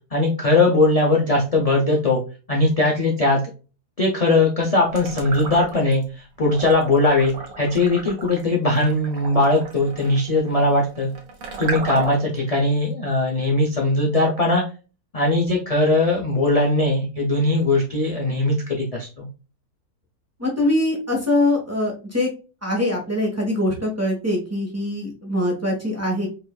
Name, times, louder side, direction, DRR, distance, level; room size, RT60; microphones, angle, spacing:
voice 1, 0.1-2.2 2.5-3.4 4.0-11.1 11.6-14.6 15.1-19.3, left 2 dB, 50° left, -2 dB, 0.4 m, -20 dB
sound 1, 4.9-6.0 6.4-12.4, right 3 dB, 65° right, 1.4 m, -34 dB
voice 2, 20.4-22.3 22.6-26.3, left 1 dB, 10° right, -3 dB, 1.0 m, -23 dB
5.3 x 2.6 x 2.2 m, 0.34 s
omnidirectional pair, 1.7 m